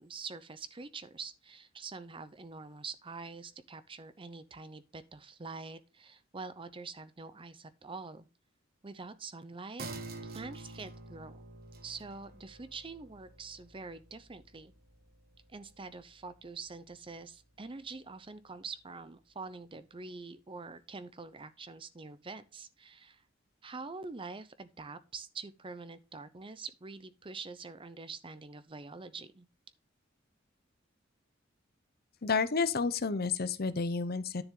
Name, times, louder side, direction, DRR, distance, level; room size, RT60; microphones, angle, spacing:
voice 1, 0.0-8.3 8.8-9.9 10.2-11.4 11.8-14.7 15.5-23.2 23.6-29.5, right 4 dB, 25° right, 0.6 m, -45 dB
sound 1, 9.8-16.8 17.2-17.3, right 2 dB, 50° right, 1.3 m, -48 dB
voice 2, 32.2-34.4, left 4 dB, 50° left, 0.7 m, -30 dB
10.0 x 6.8 x 3.8 m
head